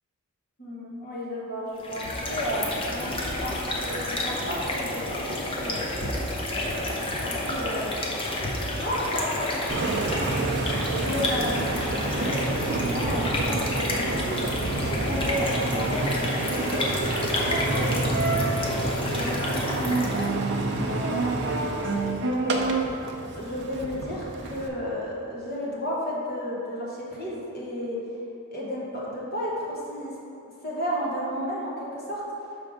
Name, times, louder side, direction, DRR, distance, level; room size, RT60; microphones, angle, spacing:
voice 1, 0.6-6.3 6.5-10.2 10.9-16.8 17.3-18.0 18.6-21.9 22.2-22.7 23.3-28.0 28.5-30.1 30.6-32.2, equal, 45° left, -5 dB, 1.3 m, -33 dB
sound 1, 1.7-20.4, left 1 dB, 25° left, 0.6 m, -30 dB
Engine, 9.7-24.7, right 2 dB, 50° right, 0.5 m, -28 dB
6.3 x 3.4 x 5.0 m, 2.8 s
head